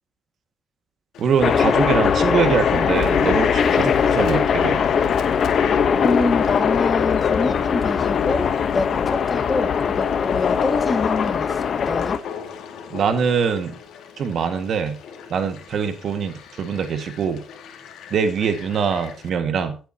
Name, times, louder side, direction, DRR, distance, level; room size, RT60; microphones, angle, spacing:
Fowl, 1.1-19.3, left 7 dB, 80° left, 2.2 m, -39 dB
voice 1, 1.2-4.8 12.9-13.8 14.2-15.0 15.3-17.4 18.1-19.8, right 6 dB, 65° right, 8 dB, 1.9 m, -23 dB
sound 1, 1.4-12.2, left 7 dB, 55° left, 1.1 m, -20 dB
voice 2, 6.0-12.2, left 3 dB, 25° left, 7 dB, 2.1 m, -26 dB
17.0 x 8.5 x 2.9 m, 0.34 s
cardioid pair, 90°, 0 cm